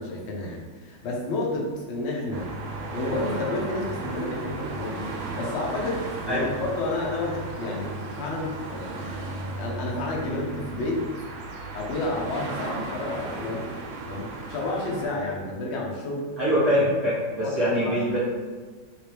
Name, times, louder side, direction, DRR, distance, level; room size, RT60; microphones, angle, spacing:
voice 1, 0.0-2.5 2.9-9.1 9.6-11.0 11.7-13.7 14.0-16.3 17.4-17.6 17.8-18.0, left 2 dB, 60° left, -2 dB, 0.7 m, -30 dB
sound 1, 2.3-15.1, right 2 dB, 75° right, 1.2 m, -35 dB
voice 2, 16.4-18.2, equal, 30° right, -10 dB, 0.7 m, -23 dB
3.1 x 2.9 x 3.2 m, 1.5 s
omnidirectional pair, 1.9 m